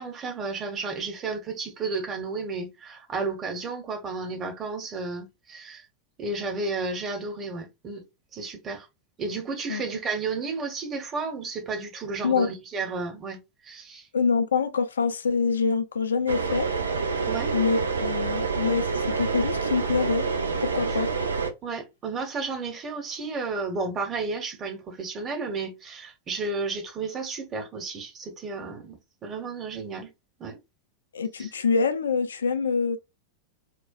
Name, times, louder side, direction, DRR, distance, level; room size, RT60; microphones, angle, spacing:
voice 1, 0.0-5.9 6.2-8.0 8.3-8.9 9.2-14.1 17.2-17.5 21.6-30.1 30.4-30.6 31.4-31.5, right 4 dB, 25° right, 1.1 m, -32 dB
voice 2, 14.1-16.7 17.5-20.2 20.6-21.1 31.1-33.0, left 5 dB, 70° left, 0.5 m, -25 dB
sound 1, 16.3-21.5, right 4 dB, 75° right, 0.6 m, -27 dB
4.4 x 2.3 x 2.3 m
figure-of-eight pair, 90°, 0 cm